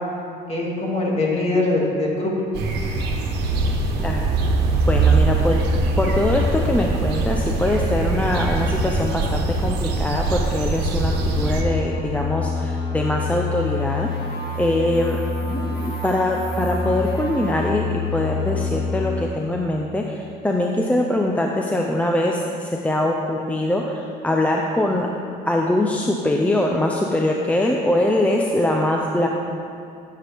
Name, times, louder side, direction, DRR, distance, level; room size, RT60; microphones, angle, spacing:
voice 1, 0.5-2.3 15.4-15.7, left 2 dB, 35° left, -3 dB, 2.3 m, -22 dB
sound 1, 2.5-11.6, right 3 dB, 85° right, 1.3 m, -22 dB
voice 2, 4.0-4.3 4.9-5.6 6.0-14.1 14.5-15.2 15.7-25.1 25.5-29.3, left 1 dB, 10° left, 0 dB, 0.7 m, -22 dB
sound 2, 10.8-19.2, left 4 dB, 65° left, 2.4 m, -27 dB
15.0 x 7.6 x 3.5 m, 2.5 s
cardioid pair, 110°, 17 cm